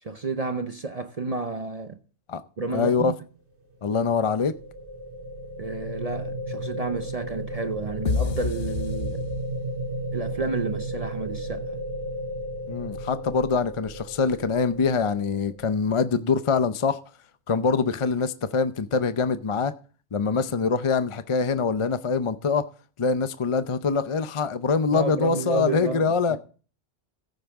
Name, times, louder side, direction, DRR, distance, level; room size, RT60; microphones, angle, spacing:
voice 1, 0.0-2.0 2.6-3.1 5.6-9.2 10.1-11.8 24.9-26.4, right 3 dB, 40° right, 0.7 m, -31 dB
voice 2, 2.7-3.1 3.8-4.5 12.7-17.0 17.5-19.7 20.1-22.7 23.0-26.4, left 5 dB, 40° left, 0.5 m, -24 dB
sound 1, 3.9-16.0, right 1 dB, 85° right, 2.8 m, -34 dB
sound 2, 8.1-9.9, left 5 dB, 65° left, 1.1 m, -29 dB
15.0 x 8.9 x 3.5 m
omnidirectional pair, 1.1 m